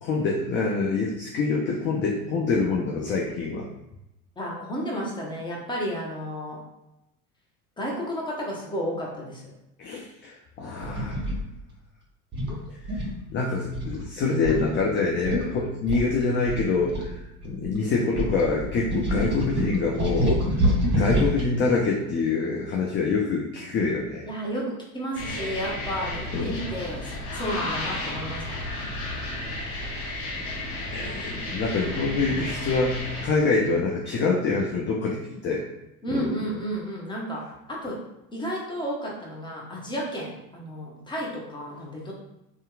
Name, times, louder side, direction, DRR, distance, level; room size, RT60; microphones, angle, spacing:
voice 1, 0.0-3.7 9.8-11.2 12.9-13.0 13.3-20.7 20.9-24.3 26.3-26.5 30.9-35.7 36.1-36.3, left 4 dB, 30° left, -1 dB, 0.3 m, -26 dB
voice 2, 4.4-6.6 7.8-9.5 24.3-28.6 36.0-37.4 37.7-38.0 38.3-42.1, equal, 10° left, -4 dB, 0.8 m, -32 dB
sound 1, 10.8-11.4 12.3-13.2 13.7-14.0 14.4-14.7 15.0-15.1 15.2-15.4 15.9-17.7 18.2-21.5, equal, 25° right, 1.1 m, -26 dB
sound 2, 25.1-33.3, left 2 dB, 60° left, 1.0 m, -33 dB
2.7 x 2.3 x 2.3 m, 0.89 s
hypercardioid pair, 70°, 45 cm